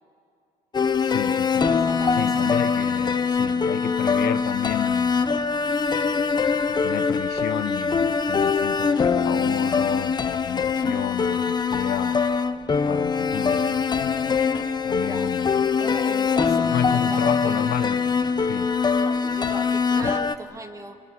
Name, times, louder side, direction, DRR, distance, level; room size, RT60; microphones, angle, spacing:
sound 1, 0.7-20.4, left 5 dB, 25° left, 0.9 m, -23 dB
voice 1, 1.0-1.9 2.1-5.4 6.7-12.3 12.9-14.4 14.8-15.7 16.6-18.1 18.4-18.7 20.0-20.1, left 12 dB, 70° left, 0.7 m, -32 dB
voice 2, 1.9-2.5 10.9-11.2 15.1-15.5 15.8-17.6 19.0-21.0, right 2 dB, 20° right, 1.9 m, -39 dB
27.0 x 21.0 x 9.5 m
cardioid pair, 110°, 17 cm